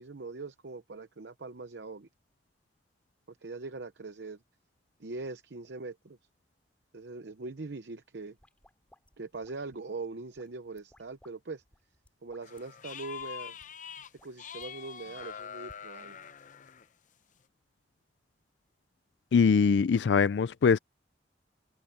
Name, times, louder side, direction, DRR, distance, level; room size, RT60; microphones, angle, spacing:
voice 1, 0.0-2.1 3.3-4.4 5.0-6.2 6.9-8.4 9.2-11.6 12.2-13.6 14.2-16.2, right 3 dB, 75° right, 0.8 m, -41 dB
sound 1, 8.2-9.9 10.3-11.3 11.6-12.6 13.2-13.3 13.6-13.7 14.0-14.7 15.2-15.8, left 1 dB, 10° left, 7.1 m, -61 dB
sound 2, 12.4-14.1 14.4-16.9, left 8 dB, 45° left, 0.7 m, -44 dB
voice 2, 19.3-20.8, left 5 dB, 85° left, 0.4 m, -22 dB
head